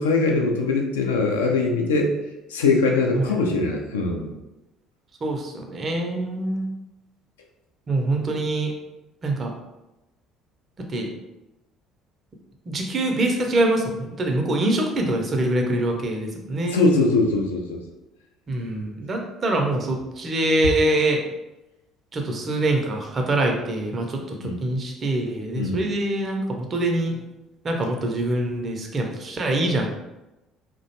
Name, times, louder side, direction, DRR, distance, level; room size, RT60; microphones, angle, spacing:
voice 1, 0.0-2.1 2.5-4.4 16.7-17.8 24.4-24.6 25.6-25.8, left 3 dB, 75° left, 2 dB, 0.3 m, -21 dB
voice 2, 5.2-6.7 7.9-8.7 9.2-9.5 10.9-11.1 12.7-16.8 18.5-21.2 22.1-27.2 27.6-29.9, right 1 dB, 35° right, 2 dB, 0.5 m, -24 dB
2.4 x 2.1 x 2.8 m, 0.97 s
figure-of-eight pair, 55°, 0 cm